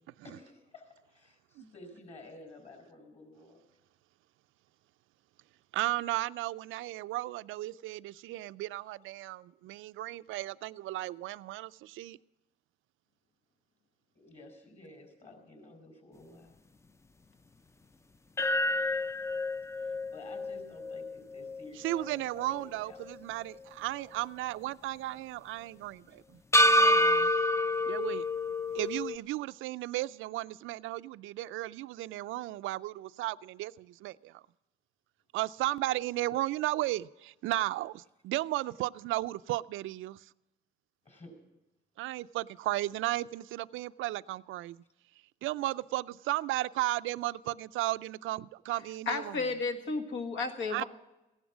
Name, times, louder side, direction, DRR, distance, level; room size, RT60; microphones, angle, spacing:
voice 1, 0.2-3.6 14.1-16.6 19.8-23.0 27.3-27.4 41.0-41.3, left 2 dB, 35° left, 4 dB, 4.8 m, -52 dB
voice 2, 5.7-12.2 21.8-26.2 26.7-27.3 27.9-28.3 28.7-34.4 35.3-40.2 42.0-44.8 45.4-49.4 50.7-50.8, right 16 dB, 85° right, 15 dB, 0.4 m, -35 dB
sound 1, 18.4-22.6 23.0-23.1 26.5-29.2, left 1 dB, 15° left, 0.4 m, -28 dB
voice 3, 49.1-50.8, left 4 dB, 75° left, 5 dB, 1.8 m, -33 dB
15.5 x 11.0 x 6.1 m, 0.99 s
cardioid pair, 90°, 20 cm